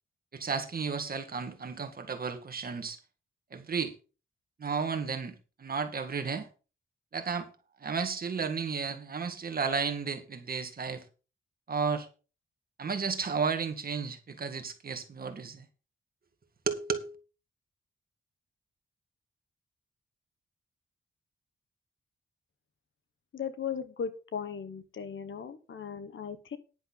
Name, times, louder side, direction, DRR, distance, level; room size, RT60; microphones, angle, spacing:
voice 1, 0.3-3.0 3.5-3.9 4.6-6.5 7.1-7.5 7.8-11.0 11.7-12.1 12.8-15.7 16.7-17.1, right 5 dB, 45° right, 1.9 m, -33 dB
voice 2, 23.3-26.6, left 7 dB, 65° left, 1.3 m, -37 dB
10.5 x 10.5 x 4.0 m
wide cardioid pair, 150°, 21 cm